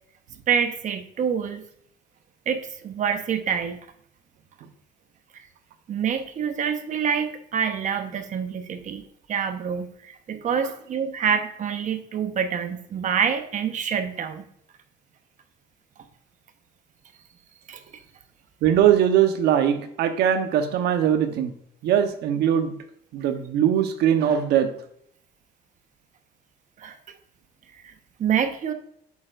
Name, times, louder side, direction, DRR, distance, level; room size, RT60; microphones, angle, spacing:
voice 1, 0.5-1.6 2.5-3.8 5.3-5.4 5.9-14.5 17.7-17.8 26.8-27.0 27.8-27.9 28.2-28.7, right 7 dB, 50° right, 8 dB, 1.0 m, -26 dB
voice 2, 18.6-21.5 21.8-22.7 23.1-24.7, right 9 dB, 80° right, 8 dB, 1.0 m, -21 dB
8.4 x 6.6 x 2.5 m, 0.68 s
cardioid pair, 110°, 17 cm